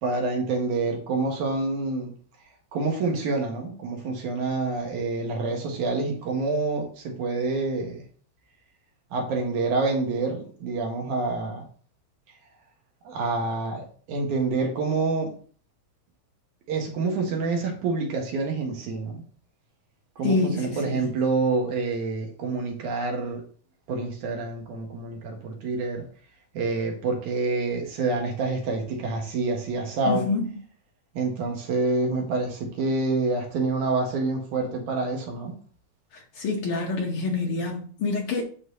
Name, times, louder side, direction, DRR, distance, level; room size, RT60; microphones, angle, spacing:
voice 1, 0.0-2.1 2.7-8.0 9.1-11.7 13.0-15.3 16.7-19.2 20.2-23.4 23.9-26.0 26.5-30.2 31.1-35.5, right 3 dB, 75° right, 2.7 m, -27 dB
voice 2, 20.2-21.1 30.1-30.4 36.4-38.4, left 3 dB, 70° left, 1.3 m, -26 dB
11.5 x 3.9 x 2.7 m
omnidirectional pair, 3.6 m